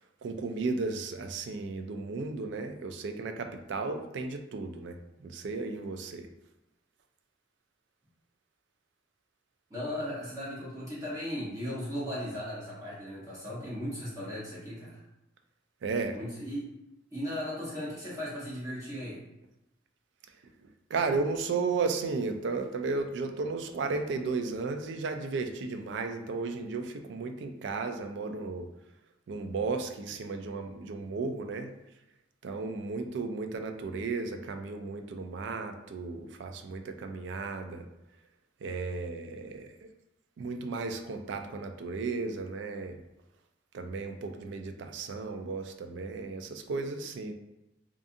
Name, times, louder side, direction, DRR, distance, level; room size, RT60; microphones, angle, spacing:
voice 1, 0.2-6.3 15.8-16.2 20.9-28.7 29.3-31.7 32.4-37.9 38.6-39.7 40.4-43.0 43.7-47.3, right 4 dB, 70° right, 6 dB, 0.3 m, -34 dB
voice 2, 9.7-15.0 16.1-16.7 17.1-19.2, equal, 15° right, -9 dB, 0.8 m, -37 dB
2.6 x 2.4 x 2.5 m, 0.92 s
head